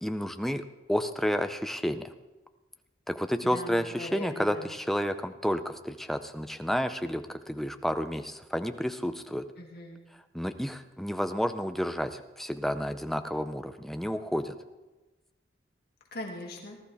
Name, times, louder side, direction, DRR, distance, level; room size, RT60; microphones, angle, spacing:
voice 1, 0.0-2.1 3.1-9.4 10.3-14.5, equal, ahead, 9 dB, 0.5 m, -31 dB
voice 2, 3.4-4.7 9.6-10.0 16.1-16.8, left 1 dB, 55° left, 0 dB, 2.3 m, -40 dB
19.0 x 13.0 x 3.5 m, 1.1 s
head